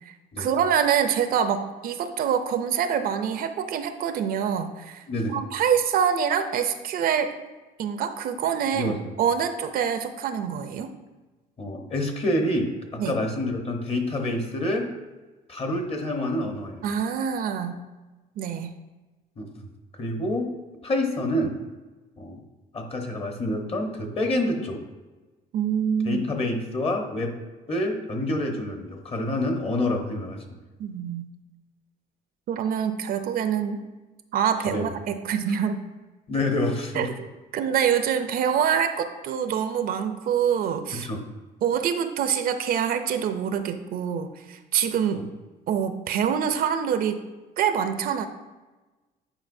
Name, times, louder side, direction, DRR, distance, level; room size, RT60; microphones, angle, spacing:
voice 1, 0.0-5.0 5.3-7.3 7.8-10.9 13.0-13.2 16.8-17.8 18.4-18.7 25.5-26.2 30.8-31.3 32.5-33.8 34.3-35.8 36.9-37.3 37.5-41.1 41.6-45.2 45.7-47.2 47.6-48.3, right 8 dB, 60° right, 9 dB, 0.5 m, -25 dB
voice 2, 11.6-14.9 15.5-16.8 19.4-19.5 19.9-20.5 20.8-21.6 22.2-22.4 22.7-24.8 26.0-27.3 27.7-30.4 34.7-34.9 35.5-35.6 36.3-37.1 40.9-41.2 45.1-45.2, left 1 dB, 35° left, 3 dB, 1.0 m, -27 dB
8.9 x 4.5 x 2.6 m, 1.2 s
cardioid pair, 110°, 17 cm